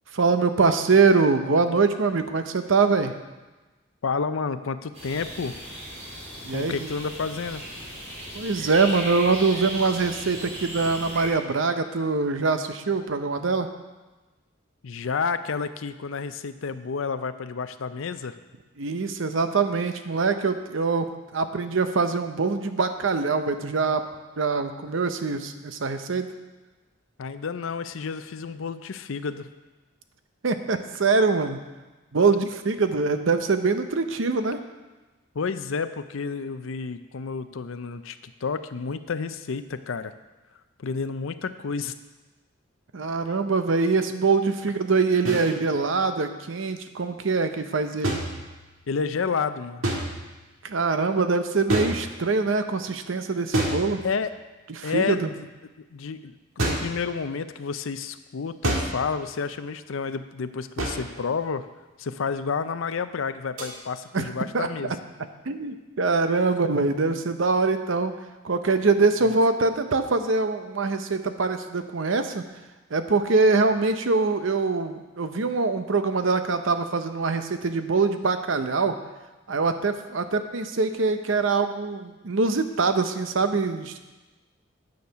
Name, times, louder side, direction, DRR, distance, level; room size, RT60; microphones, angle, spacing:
voice 1, 0.1-3.1 6.4-6.9 8.3-13.7 18.8-21.1 21.3-24.0 24.4-26.3 30.4-31.6 32.1-34.6 42.9-48.2 50.6-54.0 54.7-55.3 64.1-65.0 65.5-68.1 68.4-72.4 72.9-78.9 79.5-84.0, right 4 dB, 70° right, 9 dB, 0.7 m, -23 dB
voice 2, 4.0-5.5 6.5-7.6 14.8-18.3 27.2-29.5 35.3-40.1 40.8-41.9 48.9-49.9 54.0-54.3 54.8-55.2 55.8-61.7 62.0-64.9 69.2-69.3, left 5 dB, 75° left, 11 dB, 0.5 m, -30 dB
sound 1, 4.9-11.3, equal, 35° right, 3.4 m, -37 dB
sound 2, 45.2-45.5 48.0-48.9 49.8-50.4 51.7-52.4 53.5-54.4 56.6-57.0 58.6-59.1 60.8-61.2 63.6-63.7, right 1 dB, 85° right, 1.8 m, -28 dB
9.5 x 6.5 x 5.7 m, 1.2 s
head